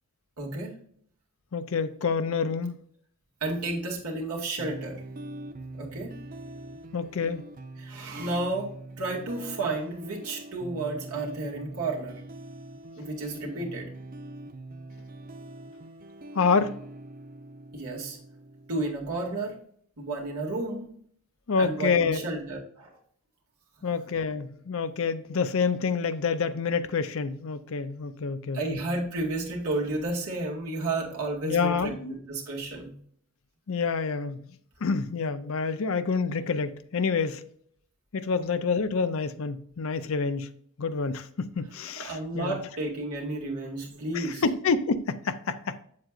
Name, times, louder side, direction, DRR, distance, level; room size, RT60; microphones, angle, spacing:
voice 1, 0.4-0.7 3.4-5.0 5.8-6.2 7.8-8.7 9.0-12.2 13.0-13.9 17.7-18.2 18.7-19.6 20.0-20.9 21.6-23.0 23.8-23.9 28.5-32.9 42.0-44.4, right 2 dB, 80° right, 2.2 m, -32 dB
voice 2, 1.5-2.8 6.9-7.5 16.3-16.8 21.5-22.2 23.8-28.8 31.4-32.2 33.7-34.4 34.8-37.4 38.1-40.5 40.8-42.6 44.1-45.8, left 5 dB, 65° left, 0.5 m, -28 dB
sound 1, 4.6-19.6, right 2 dB, 40° right, 0.6 m, -43 dB
7.5 x 7.5 x 2.5 m
head